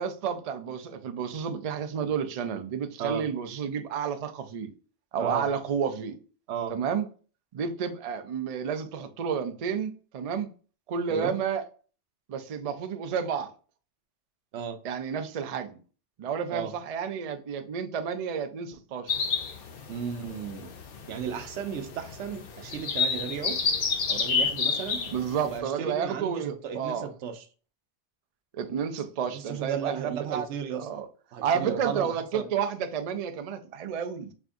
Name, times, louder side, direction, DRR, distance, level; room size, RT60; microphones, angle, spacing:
voice 1, 0.0-4.7 5.1-6.2 6.7-7.1 7.5-10.5 10.9-11.6 12.3-13.5 14.8-15.8 16.2-19.1 25.1-27.1 28.5-30.5 30.7-31.1 31.4-34.3, right 7 dB, 55° right, 0.4 m, -31 dB
sound 1, 19.1-25.6, left 5 dB, 60° left, 0.8 m, -30 dB
voice 2, 19.9-20.7 21.1-23.6 24.1-25.0 25.5-27.4 29.3-31.1 31.3-32.5, right 8 dB, 90° right, 0.9 m, -34 dB
4.5 x 3.5 x 2.5 m
omnidirectional pair, 1.2 m